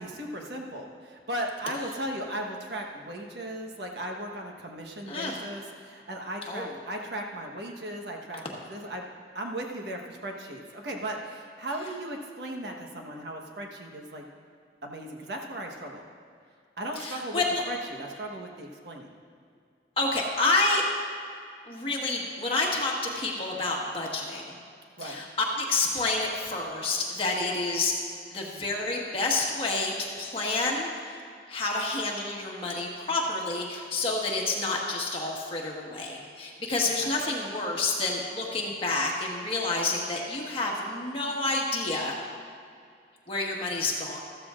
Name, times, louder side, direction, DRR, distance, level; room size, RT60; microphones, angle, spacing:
voice 1, 0.0-9.1 9.3-14.3 14.8-16.0 16.8-19.2 25.0-25.2 37.0-37.1, right 1 dB, 75° right, 1 dB, 1.2 m, -37 dB
voice 2, 17.0-17.6 20.0-20.8 21.7-24.6 25.0-27.9 28.3-31.2 31.5-42.2 43.3-44.2, left 2 dB, 30° left, -2 dB, 1.5 m, -29 dB
14.0 x 13.5 x 2.5 m, 2.3 s
head